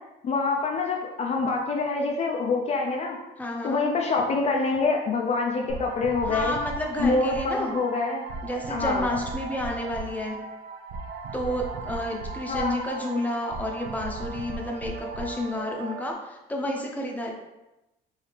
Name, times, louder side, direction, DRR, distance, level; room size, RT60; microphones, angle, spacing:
voice 1, 0.2-3.2 3.6-6.5 7.0-8.2 8.7-9.1 12.5-12.8, left 3 dB, 40° left, 0 dB, 0.5 m, -26 dB
voice 2, 3.4-3.8 6.2-7.7 8.4-10.4 11.3-17.3, left 1 dB, 10° left, 0 dB, 0.8 m, -30 dB
sound 1, 5.7-16.1, right 4 dB, 70° right, 0.5 m, -37 dB
4.8 x 2.7 x 3.3 m, 0.97 s
cardioid pair, 110°, 17 cm